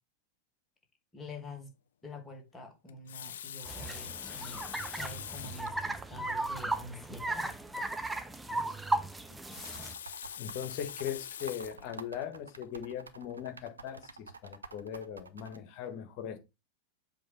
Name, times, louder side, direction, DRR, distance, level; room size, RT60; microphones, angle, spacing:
voice 1, 1.1-1.7 2.0-4.7 5.0-7.5, left 2 dB, 15° left, 2.4 m, -46 dB
Water tap faucet, 2.9-5.8 6.6-6.7 7.0-7.1 9.3-11.9 12.5-12.8, left 10 dB, 60° left, 0.3 m, -44 dB
sound 1, 3.7-10.0, right 2 dB, 5° right, 0.7 m, -36 dB
sound 2, 9.6-15.6, right 4 dB, 75° right, 0.7 m, -49 dB
voice 2, 10.4-16.4, left 9 dB, 45° left, 1.6 m, -39 dB
7.5 x 3.2 x 5.5 m
figure-of-eight pair, 90°, 0 cm